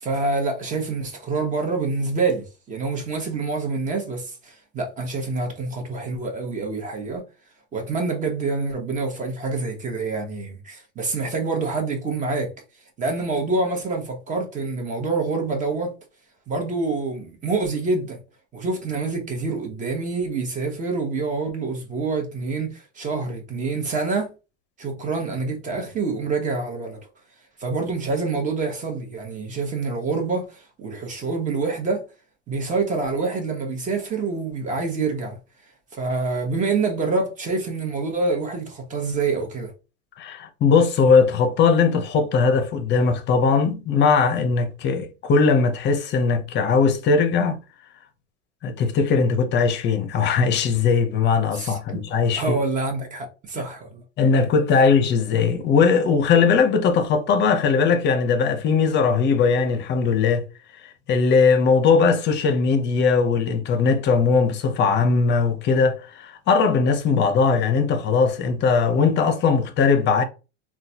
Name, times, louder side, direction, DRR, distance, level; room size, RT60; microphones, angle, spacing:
voice 1, 0.0-7.2 7.7-12.5 13.0-15.9 16.5-18.2 18.5-24.3 24.8-27.0 27.6-32.0 32.5-35.4 35.9-39.7 51.5-52.0 52.4-54.0, right 3 dB, 25° right, 1.1 m, -26 dB
voice 2, 40.2-47.6 48.6-52.5 54.2-60.5 61.1-70.2, left 5 dB, 35° left, 0.6 m, -19 dB
3.8 x 2.3 x 2.8 m
supercardioid pair, 135°, 32 cm